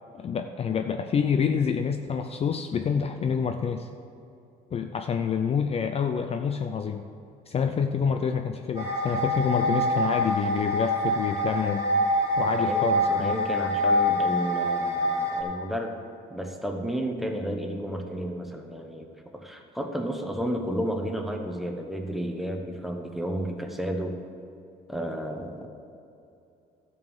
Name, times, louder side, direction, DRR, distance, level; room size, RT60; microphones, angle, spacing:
voice 1, 0.1-3.9 4.7-7.1 7.5-11.9 12.4-13.4, left 6 dB, 35° left, 7 dB, 0.5 m, -27 dB
sound 1, 8.8-15.4, left 1 dB, 20° right, 3.0 m, -25 dB
voice 2, 12.6-16.0 16.3-19.1 19.3-24.2 24.9-25.7, equal, ahead, 3 dB, 1.2 m, -32 dB
12.5 x 5.5 x 7.3 m, 2.7 s
cardioid pair, 110°, 17 cm